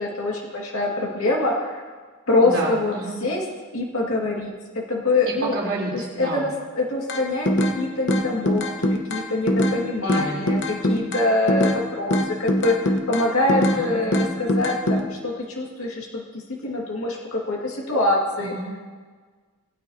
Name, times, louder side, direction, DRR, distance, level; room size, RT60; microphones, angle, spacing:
voice 1, 0.0-1.8 2.3-2.9 3.2-3.4 3.7-5.5 6.2-6.5 6.8-8.6 8.9-16.2 16.6-18.5, left 2 dB, 75° left, -2 dB, 2.0 m, -24 dB
voice 2, 2.4-3.3 5.3-6.5 10.0-11.1 13.5-14.0 18.4-18.8, right 2 dB, 65° right, -4 dB, 3.3 m, -30 dB
sound 1, 7.1-7.8 8.1-9.8 10.1-11.8 12.1-13.8 14.1-15.0, equal, 55° left, 1.0 m, -22 dB
20.5 x 9.3 x 2.8 m, 1.5 s
head